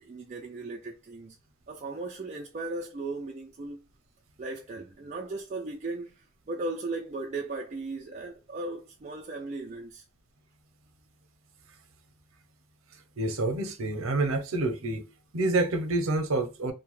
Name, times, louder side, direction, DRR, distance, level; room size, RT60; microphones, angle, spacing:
voice 1, 0.0-1.4 1.7-3.8 4.4-10.0, right 2 dB, 35° right, 0.3 m, -37 dB
voice 2, 13.2-15.1 15.3-16.7, right 2 dB, 80° right, 0.6 m, -27 dB
2.7 x 2.1 x 3.0 m
head